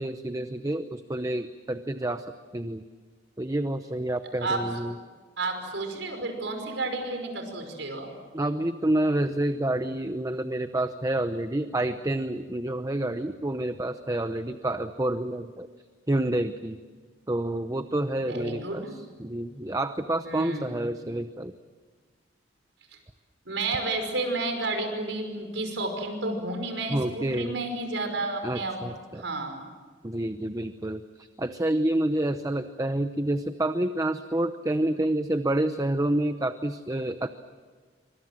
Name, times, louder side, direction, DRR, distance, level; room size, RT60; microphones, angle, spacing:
voice 1, 0.0-2.2 2.5-2.8 3.4-4.9 8.3-15.7 16.1-16.8 17.3-21.5 26.9-27.6 28.4-29.2 30.0-37.3, right 1 dB, 20° right, 9 dB, 0.8 m, -28 dB
voice 2, 5.4-8.1 18.2-18.9 20.2-20.8 23.5-28.8 29.1-29.7, right 2 dB, 80° right, 5 dB, 5.6 m, -31 dB
27.0 x 25.0 x 7.6 m, 1.5 s
head